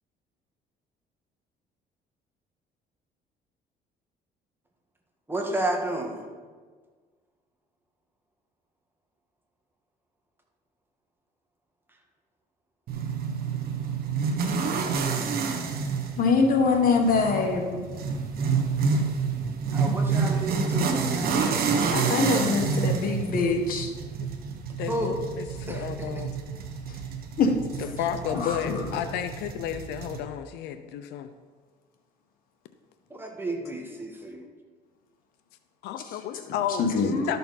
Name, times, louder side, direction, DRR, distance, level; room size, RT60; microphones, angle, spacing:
voice 1, 5.3-6.2 19.7-22.3 24.9-25.2 25.7-26.2 28.1-28.5 33.1-34.5, right 1 dB, 15° right, 1 dB, 1.5 m, -32 dB
sound 1, 12.9-30.2, right 5 dB, 65° right, 1.3 m, -28 dB
voice 2, 16.2-17.9 19.9-20.0 21.9-23.9 26.9-27.0 27.4-27.5 28.3-28.9 36.5-37.4, left 4 dB, 55° left, 3 dB, 1.5 m, -24 dB
voice 3, 24.7-26.3 27.8-31.3 35.8-37.0 37.3-37.4, left 10 dB, 85° left, 9 dB, 0.6 m, -32 dB
12.5 x 6.7 x 4.1 m, 1.5 s
cardioid pair, 110°, 17 cm